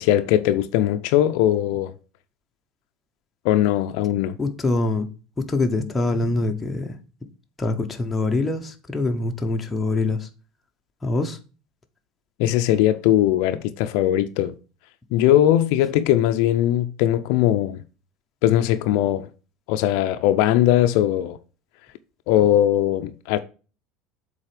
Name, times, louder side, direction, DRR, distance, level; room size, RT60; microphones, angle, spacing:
voice 1, 0.0-1.9 3.4-4.4 12.4-14.5 15.1-17.8 18.4-19.3 19.7-21.4 22.3-23.4, left 12 dB, 60° left, 0.5 m, -20 dB
voice 2, 4.4-5.1 5.4-7.0 7.6-10.3 11.0-11.4, left 2 dB, 10° left, 0.9 m, -24 dB
7.3 x 4.1 x 5.0 m
cardioid pair, 160°, 0 cm